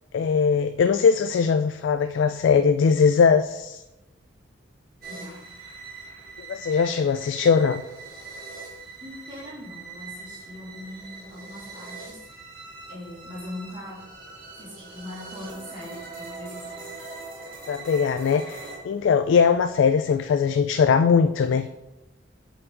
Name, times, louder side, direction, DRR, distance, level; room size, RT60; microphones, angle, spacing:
voice 1, 0.1-3.8 6.5-7.8 17.7-21.7, left 6 dB, 70° left, 10 dB, 0.3 m, -20 dB
sound 1, 5.0-18.8, right 3 dB, 50° right, 1.7 m, -42 dB
voice 2, 5.1-5.4 9.0-12.2 12.9-14.0 14.6-16.9, left 1 dB, 25° right, -7 dB, 2.6 m, -40 dB
7.6 x 4.8 x 3.8 m, 0.96 s
head